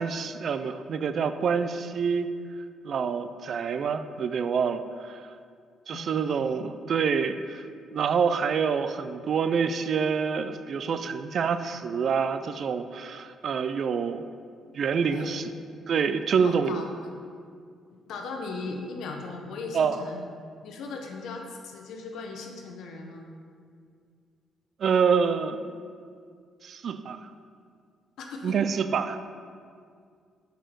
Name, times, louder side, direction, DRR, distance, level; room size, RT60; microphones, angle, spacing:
voice 1, 0.0-2.3 2.8-5.3 5.9-7.6 7.9-14.3 14.7-15.5 15.9-16.8 19.7-20.0 24.8-25.6 26.6-27.3 28.4-29.2, right 6 dB, 60° right, 11 dB, 0.3 m, -27 dB
voice 2, 5.9-6.5 15.1-15.4 16.4-17.1 18.1-20.2 20.6-23.3 28.2-28.6, left 3 dB, 75° left, 3 dB, 0.8 m, -38 dB
6.2 x 4.6 x 4.6 m, 2.2 s
cardioid pair, 90°, 0 cm